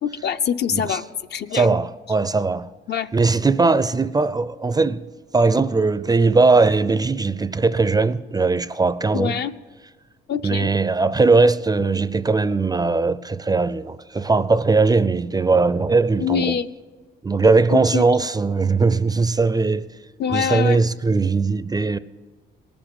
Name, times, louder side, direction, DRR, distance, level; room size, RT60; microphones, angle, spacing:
voice 1, 0.0-1.8 2.9-3.1 9.1-9.5 10.3-10.7 16.2-16.7 17.7-18.0 20.2-20.8, left 8 dB, 55° left, 0.6 m, -24 dB
voice 2, 1.5-2.7 3.1-5.0 5.3-9.4 10.4-16.6 17.2-19.9 20.3-22.0, right 3 dB, 20° right, 0.4 m, -19 dB
19.0 x 7.0 x 9.0 m
cardioid pair, 90°, 20 cm